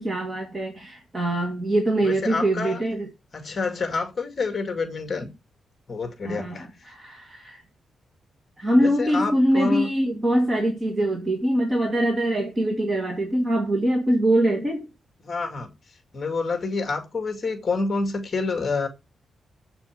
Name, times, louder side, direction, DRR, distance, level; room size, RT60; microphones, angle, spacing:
voice 1, 0.0-3.1 6.2-7.6 8.6-14.9, right 1 dB, 20° right, 2.2 m, -23 dB
voice 2, 2.0-2.8 3.3-5.3 5.9-6.7 8.8-9.9 15.2-15.7 16.1-18.9, left 4 dB, 30° left, 2.2 m, -28 dB
8.1 x 7.1 x 6.5 m
wide cardioid pair, 155°, 0 cm